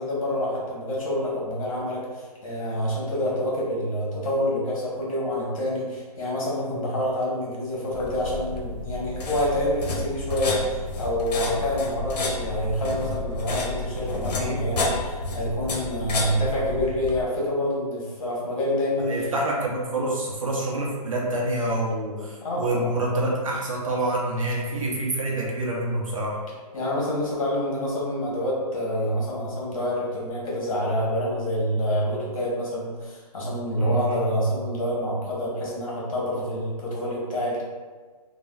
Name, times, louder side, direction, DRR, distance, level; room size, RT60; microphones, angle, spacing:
voice 1, 0.0-19.3 22.4-22.9 26.7-37.6, equal, 55° left, -5 dB, 1.1 m, -27 dB
sound 1, 7.9-17.2, left 2 dB, 85° left, 0.6 m, -30 dB
voice 2, 19.1-26.4 33.8-34.2, right 1 dB, 55° right, -3 dB, 0.7 m, -27 dB
3.3 x 2.1 x 2.3 m, 1.4 s
hypercardioid pair, 180°, 20 cm